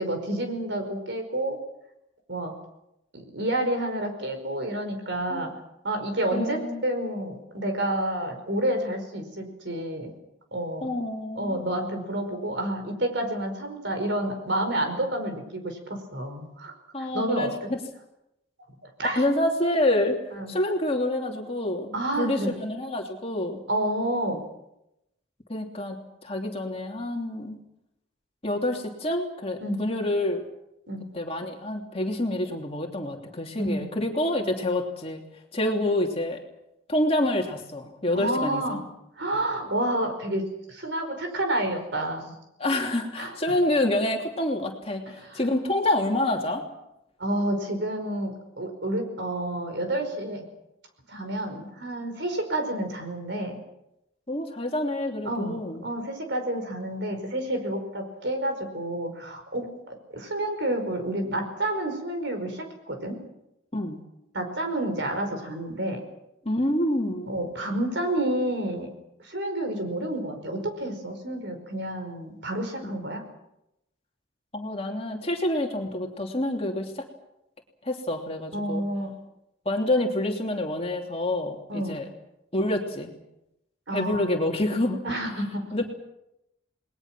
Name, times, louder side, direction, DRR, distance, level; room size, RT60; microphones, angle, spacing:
voice 1, 0.0-1.6 2.3-2.5 3.1-5.5 5.8-10.1 10.5-10.9 11.4-16.7 17.1-17.7 19.0-19.3 20.4-20.5 21.9-22.5 23.7-24.4 29.6-29.8 30.9-31.0 33.6-33.9 38.1-38.8 39.2-42.2 43.2-43.3 45.3-45.4 47.2-50.4 51.1-53.6 55.2-63.2 64.3-66.0 67.3-68.9 69.2-73.2 78.5-79.1 81.7-82.0 83.9-84.3 85.0-85.7, right 1 dB, 60° right, 6 dB, 5.1 m, -29 dB
voice 2, 6.3-6.8 10.8-11.6 16.9-17.8 19.2-20.2 20.5-23.6 25.5-27.6 28.4-30.4 31.1-35.2 35.5-36.4 36.9-38.9 42.6-46.6 54.3-55.8 63.7-64.0 66.4-67.3 74.5-77.1 77.8-78.8 79.6-82.1 82.5-83.1 83.9-85.0 85.7-85.9, left 1 dB, 30° left, 2 dB, 2.9 m, -27 dB
29.5 x 20.5 x 6.1 m, 0.86 s
head